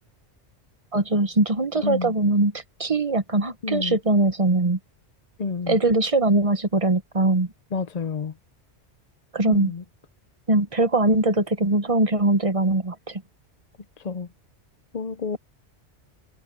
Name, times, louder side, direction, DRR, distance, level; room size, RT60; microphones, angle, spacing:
voice 1, 0.9-4.8 5.7-7.5 9.3-9.7 10.5-13.2, right 2 dB, 30° right, 1.1 m, -21 dB
voice 2, 1.8-2.1 3.6-4.0 5.4-5.8 7.7-8.3 9.5-9.8 14.0-14.3 14.9-15.4, left 5 dB, 40° left, 0.7 m, -29 dB
omnidirectional pair, 1.2 m